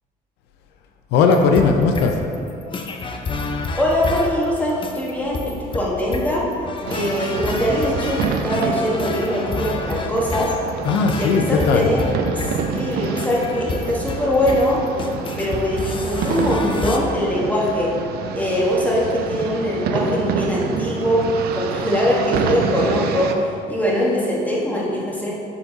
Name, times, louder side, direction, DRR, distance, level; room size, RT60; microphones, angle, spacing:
voice 1, 1.1-2.2 10.8-11.9, left 5 dB, 85° left, 4 dB, 0.5 m, -17 dB
sound 1, 1.3-17.0, left 3 dB, 30° left, 0.5 m, -30 dB
voice 2, 3.7-6.4 6.9-10.5 11.2-12.0 12.4-14.8 15.4-17.9 18.4-21.2 21.5-25.3, equal, 10° left, -5 dB, 1.4 m, -22 dB
sound 2, 6.9-23.3, right 6 dB, 70° right, 0.5 m, -27 dB
7.0 x 3.9 x 3.9 m, 2.5 s
cardioid pair, 110°, 17 cm